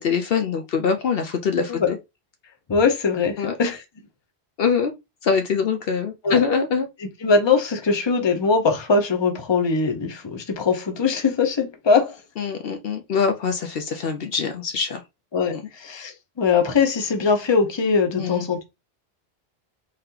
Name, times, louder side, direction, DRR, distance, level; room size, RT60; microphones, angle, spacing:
voice 1, 0.0-2.0 3.4-3.5 4.6-4.9 5.2-6.9 12.4-15.0 15.5-15.6 18.2-18.5, left 6 dB, 65° left, 0.8 m, -23 dB
voice 2, 2.7-3.8 6.2-6.4 7.2-12.2 15.3-18.6, left 4 dB, 30° left, 0.7 m, -21 dB
3.8 x 3.2 x 2.8 m
omnidirectional pair, 1.1 m